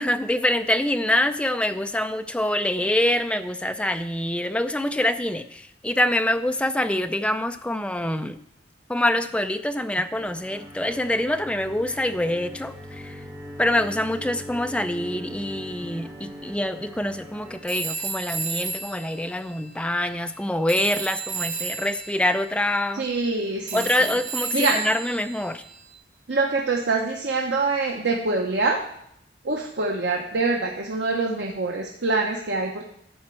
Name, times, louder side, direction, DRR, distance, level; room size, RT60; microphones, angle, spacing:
voice 1, 0.0-8.4 8.9-13.2 13.6-23.1 23.7-25.6, left 1 dB, 5° left, 8 dB, 0.4 m, -25 dB
sound 1, 10.1-17.6, equal, 15° right, 1.4 m, -40 dB
Telephone, 17.7-20.4 20.7-25.9, right 5 dB, 45° right, 0.9 m, -34 dB
voice 2, 22.9-23.8 24.5-24.8 26.3-28.8 29.4-32.8, right 3 dB, 80° right, 1 dB, 0.9 m, -25 dB
11.5 x 4.3 x 7.6 m, 0.73 s
head